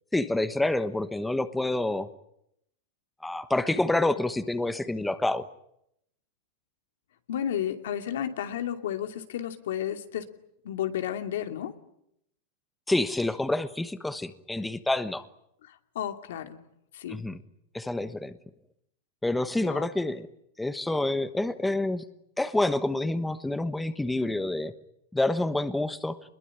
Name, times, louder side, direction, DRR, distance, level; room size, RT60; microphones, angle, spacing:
voice 1, 0.1-2.1 3.2-5.5 12.9-15.3 17.1-17.4 17.7-18.4 19.2-20.3 20.6-22.0 22.4-24.7 25.1-26.2, left 2 dB, 5° left, 11 dB, 1.2 m, -28 dB
voice 2, 7.3-10.3 10.6-11.7 15.6-16.6 16.9-17.2 19.6-19.9, left 10 dB, 85° left, 6 dB, 2.7 m, -32 dB
25.0 x 21.5 x 10.0 m, 0.77 s
supercardioid pair, 145°, 0 cm